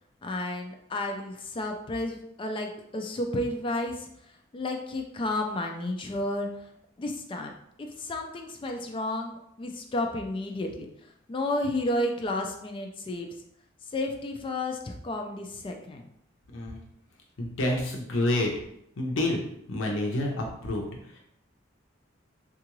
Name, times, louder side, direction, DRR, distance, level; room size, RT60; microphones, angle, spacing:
voice 1, 0.2-4.1 4.5-6.7 7.0-7.5 7.8-10.9 11.3-13.3 13.9-16.1, left 1 dB, 25° left, 3 dB, 0.3 m, -32 dB
voice 2, 17.4-18.5 19.0-19.4 19.7-21.2, left 1 dB, 75° left, 0 dB, 0.6 m, -28 dB
3.7 x 2.4 x 3.0 m, 0.74 s
head